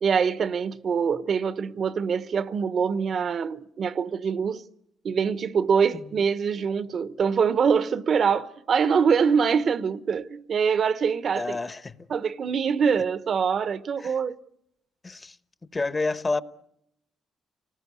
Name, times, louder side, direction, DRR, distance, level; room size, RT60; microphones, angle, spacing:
voice 1, 0.0-4.6 5.0-11.6 12.1-14.4, right 6 dB, 55° right, 0.9 m, -24 dB
voice 2, 11.4-11.9 14.0-14.1 15.0-15.4 15.7-16.4, left 3 dB, 25° left, 1.0 m, -29 dB
30.0 x 19.5 x 8.4 m
cardioid pair, 90°, 0 cm